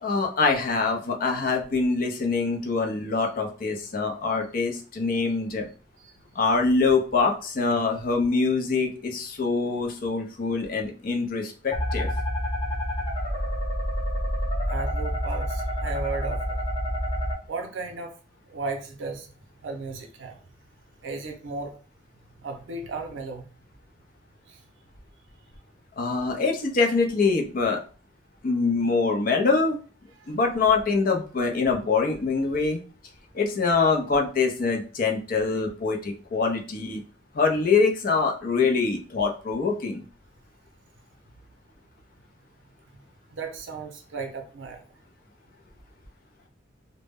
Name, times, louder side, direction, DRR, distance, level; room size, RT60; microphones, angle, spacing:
voice 1, 0.0-5.7 6.4-12.1 26.0-27.8 28.4-29.8 30.3-32.8 33.3-37.0 37.3-40.0, left 4 dB, 50° left, 2 dB, 0.5 m, -24 dB
sound 1, 11.7-17.3, equal, 30° left, 0.8 m, -28 dB
voice 2, 14.7-16.6 17.5-18.1 18.5-19.3 19.6-20.4 21.0-21.7 22.4-23.4 24.5-24.6 43.3-44.8, right 3 dB, 80° right, 4 dB, 0.5 m, -34 dB
2.1 x 2.0 x 3.4 m, 0.37 s
head